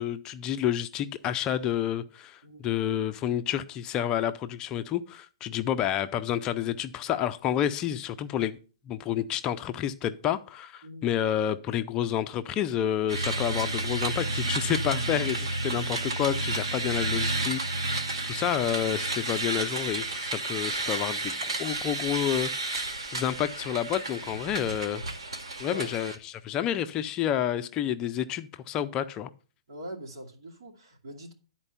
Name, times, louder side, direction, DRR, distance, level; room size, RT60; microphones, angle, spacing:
voice 1, 0.0-8.6 8.9-25.0 25.6-29.3, left 10 dB, 25° left, 0.5 m, -29 dB
sound 1, 13.1-26.2, right 2 dB, 85° right, 1.9 m, -31 dB
voice 2, 29.7-31.3, equal, 60° right, 2.4 m, -43 dB
11.0 x 4.5 x 5.6 m
hypercardioid pair, 140°, 3 cm